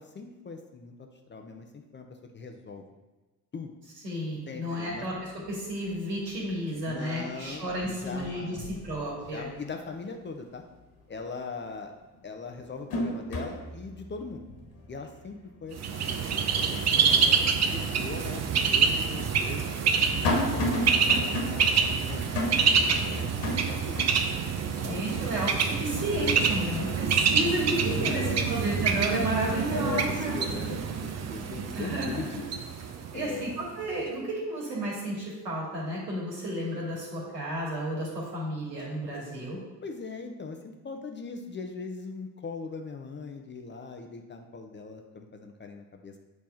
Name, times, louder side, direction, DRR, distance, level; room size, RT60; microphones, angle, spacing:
voice 1, 0.0-1.7 1.9-2.1 2.3-2.8 3.5-3.7 4.5-5.1 6.9-8.7 9.3-10.6 11.1-11.9 12.2-14.5 14.9-16.0 16.5-17.4 17.7-19.6 20.1-24.1 24.7-25.3 27.7-28.5 29.7-32.5 33.1-33.5 39.8-46.3, left 4 dB, 20° left, 4 dB, 0.8 m, -40 dB
voice 2, 4.0-5.1 5.5-8.6 8.8-9.5 24.9-28.2 28.5-30.3 31.7-32.4 33.1-39.6, right 1 dB, 75° right, -4 dB, 2.4 m, -32 dB
sound 1, 4.9-5.0 5.4-6.0 6.3-7.1 7.4-9.7 10.1-10.2 11.6-11.7 12.2-17.4 17.8-17.9 18.8-24.1, left 1 dB, 50° left, 1.8 m, -34 dB
Bird, 15.8-33.5, right 6 dB, 35° right, 0.8 m, -27 dB
7.8 x 3.5 x 5.6 m, 1.2 s
figure-of-eight pair, 60°, 49 cm